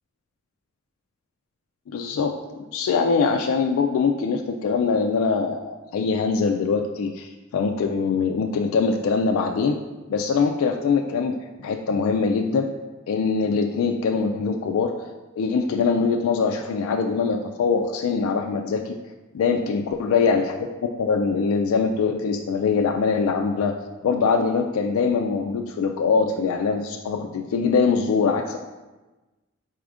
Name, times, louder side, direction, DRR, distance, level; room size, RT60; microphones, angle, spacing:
voice 1, 1.9-9.8 10.1-12.7 13.1-14.9 15.4-19.0 19.3-20.6 21.0-23.7 24.0-28.6, left 5 dB, 80° left, 3 dB, 0.3 m, -23 dB
4.3 x 2.4 x 4.7 m, 1.1 s
head